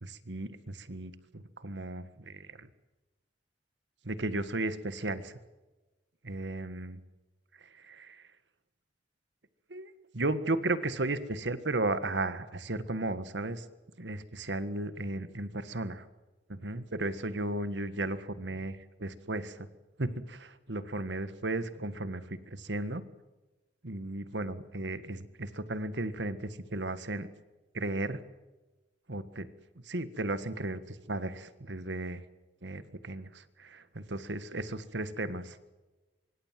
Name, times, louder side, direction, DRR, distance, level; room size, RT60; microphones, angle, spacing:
voice 1, 0.0-2.7 4.0-5.3 6.2-7.0 7.8-8.2 9.7-13.6 14.0-16.0 16.5-19.7 20.0-23.0 23.8-27.3 27.7-28.2 29.1-29.5 29.9-32.2 32.6-35.6, right 2 dB, 90° right, 13 dB, 1.7 m, -35 dB
25.5 x 23.5 x 7.6 m, 1.1 s
head